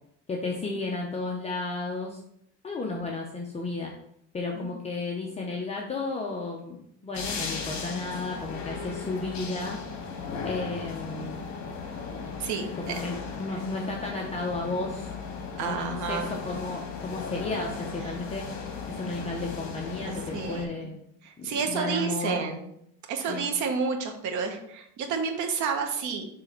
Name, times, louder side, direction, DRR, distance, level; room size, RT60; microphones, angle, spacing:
voice 1, 0.3-2.2 2.6-3.9 4.3-9.8 10.4-11.5 12.9-15.1 15.6-18.5 18.9-21.0 21.4-22.5 23.3-23.5, left 3 dB, 20° left, -1 dB, 0.7 m, -33 dB
sound 1, 7.1-20.7, left 5 dB, 55° left, 1.6 m, -36 dB
voice 2, 12.4-13.0 13.5-13.6 15.6-16.3 18.0-18.1 20.1-20.9 21.2-22.7 23.1-26.3, right 5 dB, 65° right, 4 dB, 1.1 m, -30 dB
6.3 x 3.4 x 4.4 m, 0.72 s
cardioid pair, 150°, 32 cm